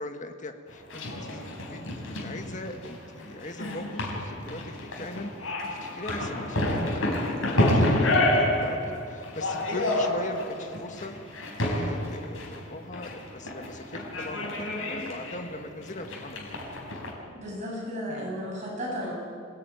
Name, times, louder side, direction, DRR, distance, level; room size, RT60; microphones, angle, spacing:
voice 1, 0.0-1.8 2.1-11.1 11.4-16.5 18.1-18.4, left 2 dB, 40° left, 5 dB, 1.7 m, -40 dB
sound 1, 0.7-17.1, left 1 dB, 85° left, 4.7 m, -29 dB
voice 2, 17.3-19.1, equal, 35° right, -3 dB, 7.8 m, -34 dB
25.0 x 17.5 x 9.2 m, 2.4 s
head